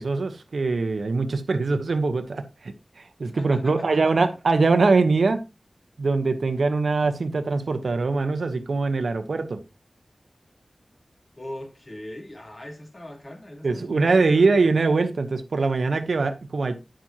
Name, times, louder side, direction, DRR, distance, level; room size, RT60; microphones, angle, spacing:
voice 1, 0.0-2.7 3.2-5.4 6.0-9.6 13.6-16.7, right 3 dB, 90° right, 1.1 m, -22 dB
voice 2, 3.3-4.3 11.4-14.7, left 1 dB, 45° left, 3.3 m, -40 dB
10.0 x 7.6 x 2.9 m
wide cardioid pair, 60°, 0 cm